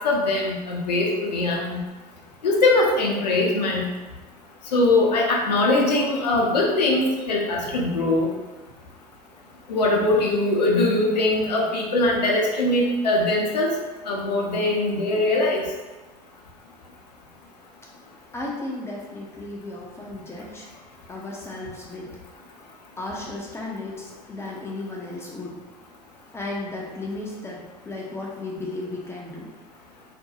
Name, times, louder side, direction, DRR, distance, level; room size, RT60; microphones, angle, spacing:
voice 1, 0.0-1.8 2.4-3.8 4.7-8.3 9.7-13.7 14.1-15.6, left 2 dB, 75° left, -2 dB, 0.6 m, -21 dB
voice 2, 18.3-20.7 21.1-22.1 23.0-25.5 26.3-27.6 27.9-29.5, left 2 dB, 10° left, -3 dB, 0.5 m, -34 dB
2.5 x 2.2 x 2.8 m, 1.2 s
figure-of-eight pair, 70°, 21 cm